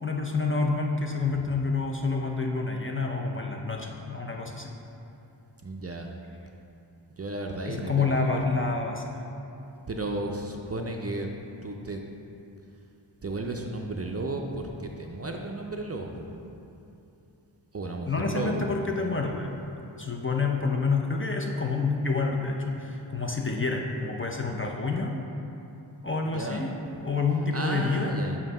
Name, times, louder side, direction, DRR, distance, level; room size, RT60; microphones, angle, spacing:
voice 1, 0.0-4.7 7.6-9.2 18.1-19.5 20.0-25.2 26.0-26.7 27.0-28.2, left 4 dB, 30° left, 1 dB, 0.4 m, -28 dB
voice 2, 5.6-6.1 7.2-8.4 9.9-11.3 11.6-12.0 13.2-16.4 17.7-19.2 26.3-26.8 27.5-28.4, right 2 dB, 35° right, 2 dB, 0.4 m, -33 dB
7.3 x 2.8 x 5.3 m, 2.8 s
wide cardioid pair, 65°, 47 cm